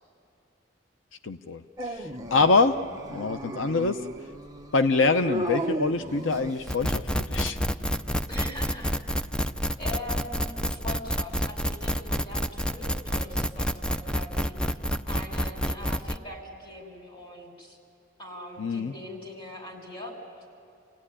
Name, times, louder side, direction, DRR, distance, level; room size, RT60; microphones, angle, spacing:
voice 1, 1.2-2.7 3.1-4.0 4.7-7.0 7.3-7.6 18.6-18.9, left 3 dB, 85° left, 9 dB, 0.7 m, -25 dB
Dog, 1.8-6.9, right 1 dB, 20° right, 1.0 m, -35 dB
sound 1, 6.7-16.2, equal, 5° left, 0.5 m, -28 dB
voice 2, 8.3-9.3 9.8-14.8 15.1-17.8 18.2-20.1, left 1 dB, 25° left, 1 dB, 5.7 m, -41 dB
28.5 x 17.5 x 10.0 m, 2.6 s
head